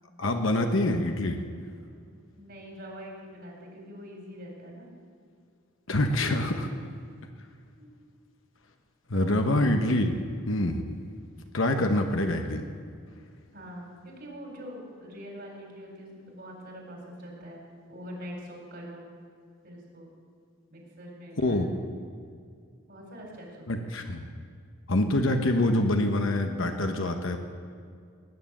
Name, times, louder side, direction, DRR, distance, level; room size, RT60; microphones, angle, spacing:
voice 1, 0.2-1.4 5.9-6.7 9.1-10.2 10.5-10.8 11.5-12.6 21.4-21.7 23.7-24.3 24.9-27.4, left 1 dB, 70° left, 5 dB, 1.1 m, -25 dB
voice 2, 2.4-4.9 7.8-7.9 9.1-9.3 13.5-17.6 17.9-19.1 19.6-20.1 20.7-21.6 22.9-23.9, equal, 50° right, 0 dB, 4.1 m, -44 dB
18.5 x 9.5 x 7.4 m, 2.2 s
head